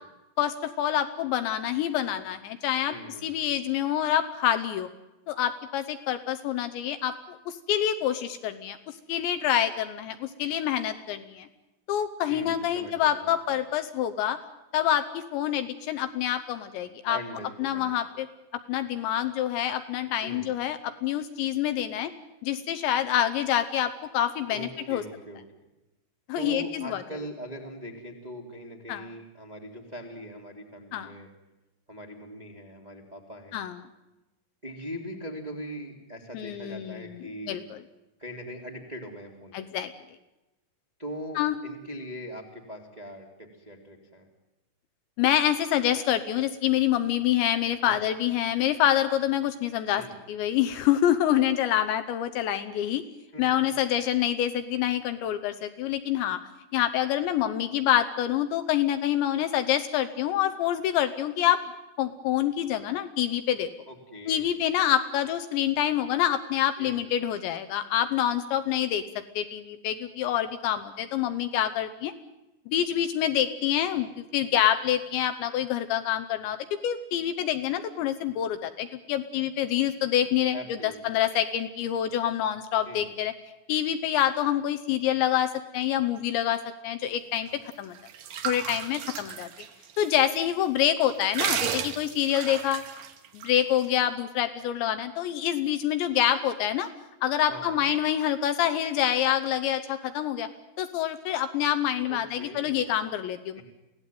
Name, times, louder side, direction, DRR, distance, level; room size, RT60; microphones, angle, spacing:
voice 1, 0.4-3.0 3.2-4.9 5.3-11.5 11.9-14.4 14.7-17.2 17.6-18.3 18.7-22.1 22.4-25.0 26.3-27.0 28.9-29.0 30.9-31.1 33.5-33.8 36.3-37.1 37.5-37.8 39.5-39.9 41.4-41.6 45.2-50.0 50.3-53.0 53.4-56.4 56.7-61.6 62.0-63.7 64.3-69.0 69.4-72.1 72.7-76.6 76.8-80.8 81.0-83.3 83.7-88.0 88.4-89.5 90.0-92.8 93.3-96.9 97.2-100.5 100.8-103.6, left 11 dB, 75° left, 8 dB, 2.8 m, -26 dB
voice 2, 2.9-3.5 12.2-13.6 17.1-18.0 20.2-20.5 24.5-25.4 26.3-31.3 31.9-33.6 34.6-37.6 38.2-39.5 41.0-44.2 47.8-48.0 49.9-50.2 53.3-53.7 63.9-64.5 66.8-67.0 80.5-81.2 82.8-83.1 97.4-97.9 102.1-102.9 103.5-103.6, equal, 25° right, 1 dB, 0.9 m, -41 dB
sound 1, 87.7-90.2 90.5-90.6 91.0-93.5, right 9 dB, 65° right, 2.2 m, -33 dB
24.5 x 17.0 x 9.2 m, 0.99 s
omnidirectional pair, 5.9 m